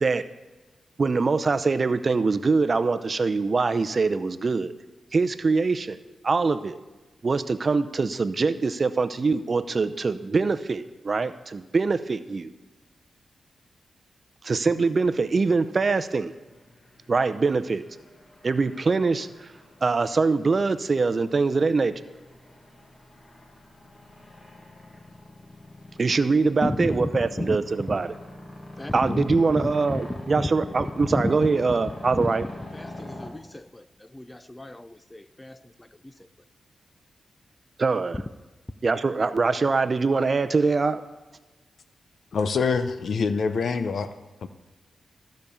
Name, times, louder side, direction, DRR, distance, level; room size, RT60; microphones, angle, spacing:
voice 1, 1.0-4.7 5.1-6.0 6.2-6.8 7.2-12.5 14.4-16.3 17.1-17.8 18.4-19.3 19.8-21.9 26.0-28.1 28.9-32.4 37.8-38.2 38.8-41.0, right 4 dB, 45° right, 0.6 m, -23 dB
sound 1, 15.1-33.3, left 1 dB, 35° left, 1.7 m, -44 dB
voice 2, 26.6-27.1 27.4-27.6 27.9-28.0 28.8-29.4 29.9-30.0 31.1-31.2 32.2-32.3 32.7-36.3, left 1 dB, 15° left, 0.5 m, -32 dB
voice 3, 42.3-44.1 44.4-44.5, left 5 dB, 70° left, 0.7 m, -25 dB
14.5 x 5.2 x 7.0 m
cardioid pair, 75°, 0 cm